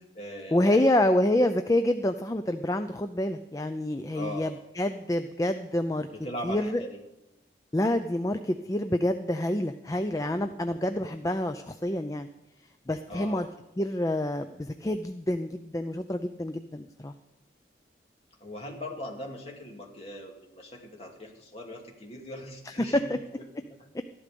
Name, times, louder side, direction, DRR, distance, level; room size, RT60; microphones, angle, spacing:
voice 1, 0.0-0.9 4.1-4.5 6.1-7.0 7.8-8.0 13.1-13.4 18.4-23.2, equal, 35° left, 0 dB, 2.6 m, -40 dB
voice 2, 0.5-6.1 6.4-6.8 7.7-12.3 12.9-13.5 13.8-17.1 22.7-23.2, left 1 dB, 20° left, 8 dB, 0.5 m, -27 dB
13.5 x 11.5 x 5.2 m, 0.92 s
head